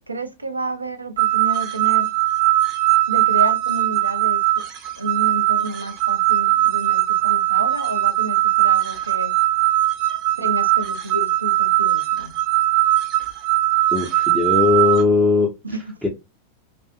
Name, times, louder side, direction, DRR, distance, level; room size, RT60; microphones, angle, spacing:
voice 1, 0.1-2.2 3.1-4.6 5.0-9.3 10.4-12.3 15.6-15.9, right 1 dB, 80° right, 0.5 m, -30 dB
sound 1, 1.2-15.0, right 17 dB, 40° right, 0.6 m, -20 dB
voice 2, 13.9-15.5 16.0-16.1, left 4 dB, ahead, 0.6 m, -18 dB
2.6 x 2.4 x 2.3 m
figure-of-eight pair, 90°, 0 cm